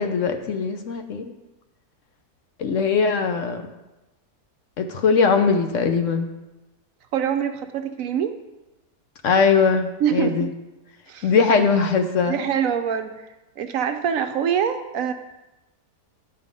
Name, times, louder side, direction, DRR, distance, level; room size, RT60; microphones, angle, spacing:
voice 1, 0.0-1.3 2.6-3.6 4.8-6.3 9.2-10.5 11.2-12.4, left 5 dB, 60° left, 6 dB, 0.9 m, -20 dB
voice 2, 7.1-8.4 10.0-10.5 11.1-11.3 12.3-13.3 13.6-15.1, right 8 dB, 70° right, 7 dB, 0.9 m, -24 dB
11.0 x 5.6 x 5.2 m, 1.0 s
omnidirectional pair, 1.7 m